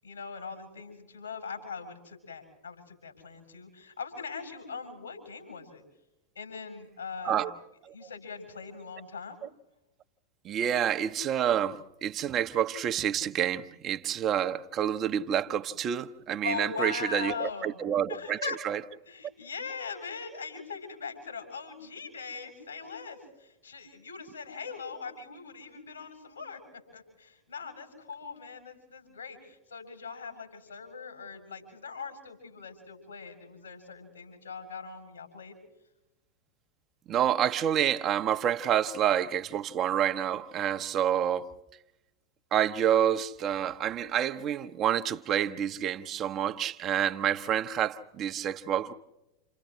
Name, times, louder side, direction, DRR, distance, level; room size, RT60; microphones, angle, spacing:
voice 1, 0.0-5.8 6.3-7.5 7.9-9.4 16.4-17.8 18.1-18.6 19.1-26.6 26.9-35.5, left 5 dB, 75° left, 7.4 m, -41 dB
voice 2, 10.4-18.8 37.1-41.5 42.5-48.9, right 10 dB, 30° right, 0.9 m, -28 dB
30.0 x 28.5 x 3.2 m
figure-of-eight pair, 90°, 0 cm